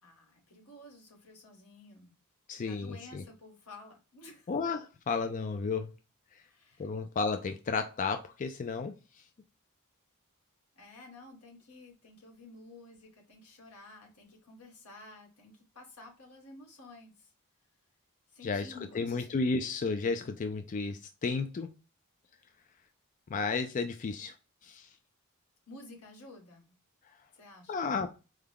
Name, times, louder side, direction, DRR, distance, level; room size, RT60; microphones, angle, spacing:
voice 1, 0.0-2.2 2.6-4.5 6.4-6.9 10.7-17.3 18.3-19.3 25.7-26.7 27.3-27.9, left 2 dB, 90° left, 1.6 m, -52 dB
voice 2, 2.5-3.2 4.5-5.9 6.8-9.0 18.4-21.7 23.3-24.3 24.6-24.9 27.7-28.1, left 4 dB, 35° left, 0.3 m, -33 dB
4.7 x 2.2 x 3.5 m
head